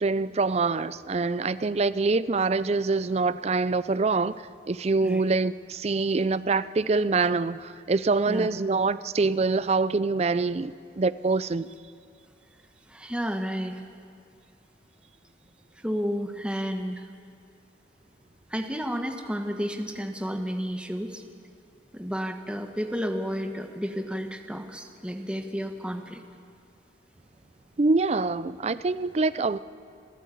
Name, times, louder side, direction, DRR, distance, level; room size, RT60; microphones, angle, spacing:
voice 1, 0.0-11.7 27.8-29.6, right 3 dB, 35° right, 0.5 m, -25 dB
voice 2, 12.9-13.8 15.8-17.1 18.5-21.2 21.9-26.2, equal, 5° right, 1.1 m, -31 dB
26.5 x 14.0 x 8.4 m
head